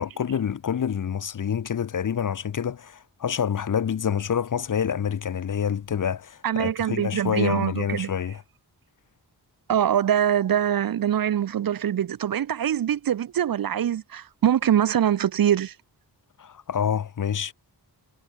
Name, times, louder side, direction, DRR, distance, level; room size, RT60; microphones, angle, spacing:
voice 1, 0.0-8.4 16.4-17.5, left 8 dB, 50° left, 0.7 m, -27 dB
voice 2, 6.4-8.1 9.7-15.7, right 10 dB, 60° right, 0.5 m, -23 dB
wide cardioid pair, 145°, 41 cm